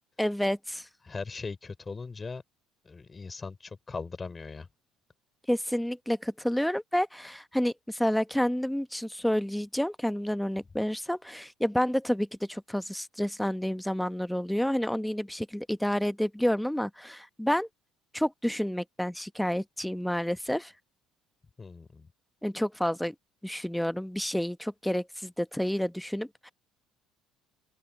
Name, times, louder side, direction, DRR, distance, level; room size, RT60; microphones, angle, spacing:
voice 1, 0.2-0.9 5.5-17.7 18.1-20.7 22.4-23.1 23.4-26.5, equal, 5° left, 1.1 m, -29 dB
voice 2, 1.0-2.4 2.8-4.7 21.6-22.1, left 4 dB, 25° left, 5.7 m, -39 dB
open air
hypercardioid pair, 70°, 0 cm